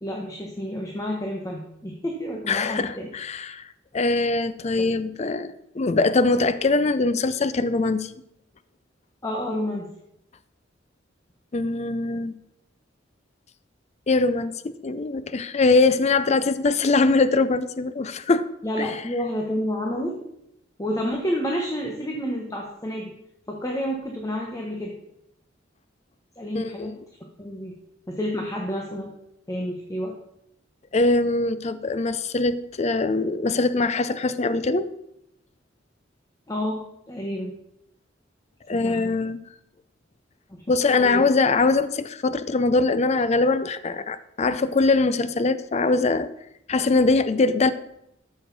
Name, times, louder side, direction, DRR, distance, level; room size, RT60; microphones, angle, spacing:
voice 1, 0.0-3.1 4.8-4.9 9.2-9.9 18.6-20.1 20.8-23.1 23.5-25.0 26.4-26.9 27.4-27.7 28.1-29.1 29.5-30.1 36.5-36.8 37.1-37.6 38.7-39.1 40.5-40.6 41.0-41.2, equal, 20° left, 0 dB, 1.1 m, -29 dB
voice 2, 2.5-3.7 3.9-8.1 11.5-12.3 14.1-18.5 18.8-18.9 26.5-26.9 30.9-34.9 38.7-39.4 40.7-46.3 46.7-47.7, left 3 dB, 35° left, 13 dB, 0.5 m, -22 dB
13.0 x 6.4 x 4.0 m, 0.79 s
head